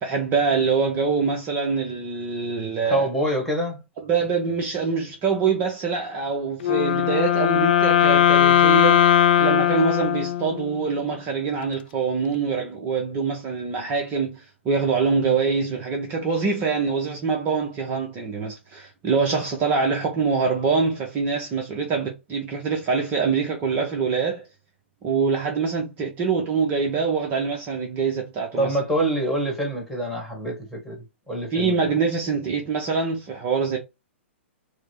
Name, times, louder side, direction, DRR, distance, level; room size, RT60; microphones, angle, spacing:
voice 1, 0.0-3.1 4.0-9.0 9.4-24.5 25.0-28.8 31.5-33.8, right 5 dB, 30° right, 0.9 m, -24 dB
voice 2, 2.8-3.8 28.6-31.0 31.3-31.9, right 1 dB, ahead, 1.7 m, -25 dB
Wind instrument woodwind instrument, 6.6-10.8, left 10 dB, 50° left, 0.5 m, -19 dB
4.6 x 2.2 x 4.5 m
figure-of-eight pair, 110°, 7 cm